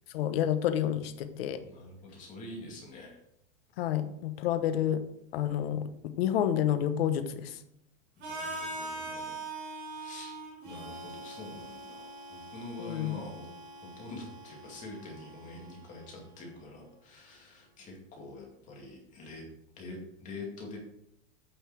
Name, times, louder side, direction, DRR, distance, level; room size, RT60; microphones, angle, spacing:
voice 1, 0.1-1.6 3.8-5.1 5.3-7.6 12.8-13.2, left 10 dB, 50° left, 10 dB, 1.0 m, -29 dB
voice 2, 1.6-3.2 8.2-9.4 9.9-10.3 10.6-13.5 13.8-19.4 19.8-20.8, left 2 dB, 20° left, -1 dB, 2.4 m, -45 dB
Harmonica, 8.2-16.1, right 2 dB, 30° right, 4.4 m, -43 dB
9.2 x 5.5 x 6.2 m, 0.76 s
supercardioid pair, 175°, 38 cm